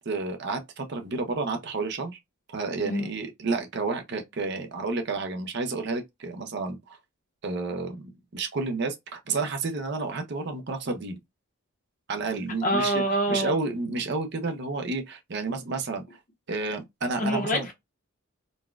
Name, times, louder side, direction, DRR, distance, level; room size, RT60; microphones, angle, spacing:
voice 1, 0.1-2.2 2.5-7.0 7.4-11.2 12.1-12.9 13.3-16.0 16.5-17.7, right 3 dB, 50° right, 0.6 m, -30 dB
voice 2, 12.6-13.5 17.2-17.7, equal, 35° left, 0.9 m, -26 dB
4.0 x 2.3 x 2.3 m
head